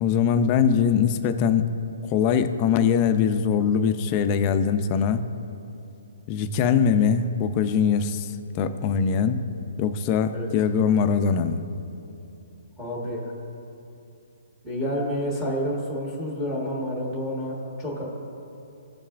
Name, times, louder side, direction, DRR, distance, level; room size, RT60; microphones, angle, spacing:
voice 1, 0.0-1.7 2.1-5.3 6.3-9.4 9.8-11.6, left 7 dB, 25° left, 9 dB, 0.4 m, -22 dB
voice 2, 12.8-13.3 14.6-18.0, equal, 10° right, -3 dB, 1.2 m, -29 dB
14.5 x 5.5 x 2.5 m, 2.8 s
hypercardioid pair, 165°, 0 cm